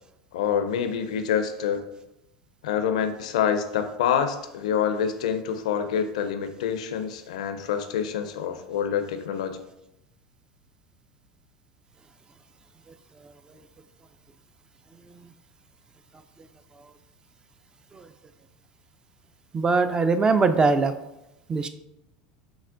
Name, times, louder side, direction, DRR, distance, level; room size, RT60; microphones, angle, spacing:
voice 1, 0.3-1.8 2.6-9.6, left 8 dB, 75° left, 8 dB, 0.4 m, -26 dB
voice 2, 19.5-20.9 21.5-21.7, right 4 dB, 20° right, 9 dB, 0.4 m, -21 dB
5.8 x 2.1 x 2.5 m, 0.90 s
hypercardioid pair, 85°, 4 cm